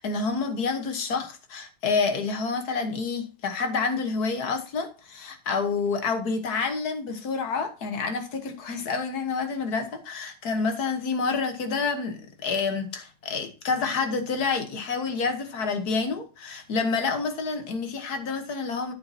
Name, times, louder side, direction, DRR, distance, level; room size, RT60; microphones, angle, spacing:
voice 1, 0.0-18.9, left 4 dB, 50° left, 1.6 m, -28 dB
9.6 x 8.3 x 2.8 m
omnidirectional pair, 2.3 m